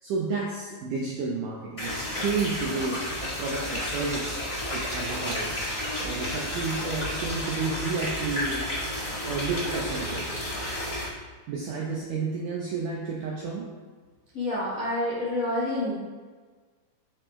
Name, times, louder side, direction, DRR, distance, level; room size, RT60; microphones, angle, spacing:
voice 1, 0.0-5.6 6.0-8.6 9.3-10.3 11.5-13.7, right 4 dB, 85° right, -2 dB, 1.8 m, -31 dB
sound 1, 1.8-11.1, left 1 dB, 65° left, 0.3 m, -31 dB
voice 2, 14.3-15.9, left 1 dB, 85° left, -8 dB, 0.7 m, -28 dB
6.9 x 5.0 x 3.6 m, 1.4 s
omnidirectional pair, 4.5 m